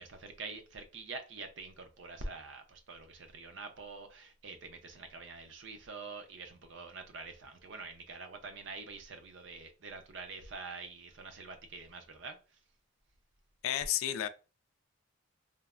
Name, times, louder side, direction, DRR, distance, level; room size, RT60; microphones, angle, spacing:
voice 1, 0.0-12.4, right 3 dB, 60° right, 0.5 m, -46 dB
voice 2, 13.6-14.3, left 11 dB, 85° left, 0.3 m, -31 dB
3.2 x 2.0 x 2.4 m
head